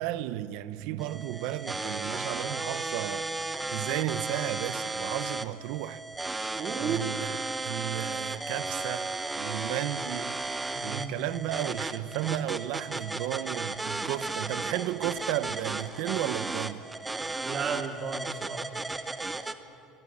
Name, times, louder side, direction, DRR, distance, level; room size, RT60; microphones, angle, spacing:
voice 1, 0.0-3.3 3.7-6.0 6.8-7.4 7.6-10.4 10.8-16.8, right 14 dB, 75° right, 0.9 m, -33 dB
sound 1, 1.0-19.5, right 2 dB, 10° right, 1.0 m, -34 dB
voice 2, 6.5-7.0 10.7-11.2 17.4-18.7, right 6 dB, 35° right, 2.4 m, -34 dB
23.0 x 22.5 x 8.6 m
cardioid pair, 150°, 0 cm